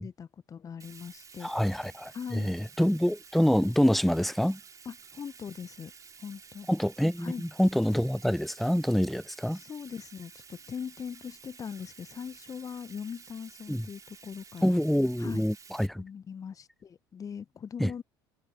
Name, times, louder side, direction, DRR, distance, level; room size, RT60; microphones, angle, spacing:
voice 1, 0.0-1.5 2.1-2.6 4.8-5.9 6.2-6.7 7.2-7.4 9.5-14.8 15.2-15.5 16.0-18.0, left 7 dB, 30° left, 0.9 m, -41 dB
Bathtub (filling or washing), 0.8-15.9, right 6 dB, 30° right, 3.8 m, -52 dB
voice 2, 1.4-4.6 6.7-9.6 13.7-13.9 14.6-16.0 17.8-17.9, equal, ahead, 0.6 m, -26 dB
figure-of-eight pair, 60°, 12 cm